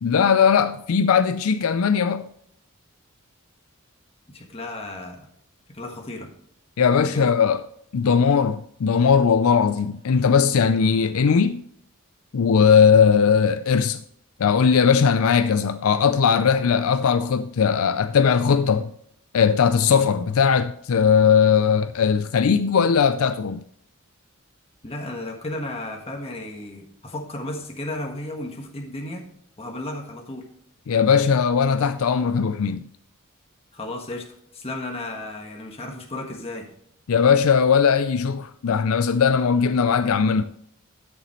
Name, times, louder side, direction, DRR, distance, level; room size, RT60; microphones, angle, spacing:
voice 1, 0.0-2.2 6.8-7.6 7.9-11.6 12.3-14.0 14.4-18.9 19.3-23.6 30.9-32.9 37.1-40.4, left 6 dB, 75° left, 0.4 m, -19 dB
voice 2, 4.3-5.3 5.7-6.3 7.0-7.3 24.8-29.2 29.6-30.4 33.7-34.3 34.5-36.7, left 1 dB, 30° left, 1.4 m, -34 dB
12.0 x 7.0 x 3.1 m
head